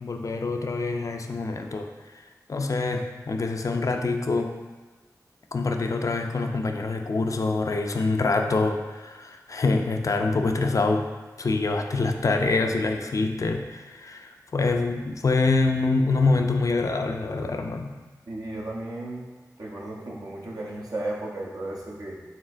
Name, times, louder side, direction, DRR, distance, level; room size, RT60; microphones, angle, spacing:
voice 1, 0.0-2.2 2.5-4.6 5.5-11.1 11.4-17.9, left 3 dB, 55° left, 4 dB, 0.4 m, -25 dB
voice 2, 18.3-19.3 19.6-22.2, right 2 dB, 65° right, -3 dB, 0.8 m, -34 dB
4.3 x 3.5 x 2.5 m, 1.3 s
cardioid pair, 45°, 7 cm